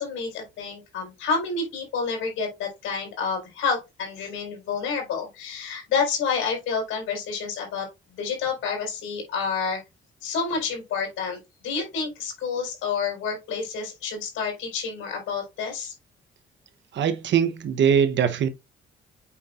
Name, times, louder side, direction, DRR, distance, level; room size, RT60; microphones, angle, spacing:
voice 1, 0.0-7.9 8.2-9.8 10.2-15.9, left 5 dB, 85° left, 4.4 m, -29 dB
voice 2, 16.9-18.5, right 8 dB, 65° right, 1.0 m, -21 dB
8.3 x 5.5 x 2.5 m
cardioid pair, 90°, 20 cm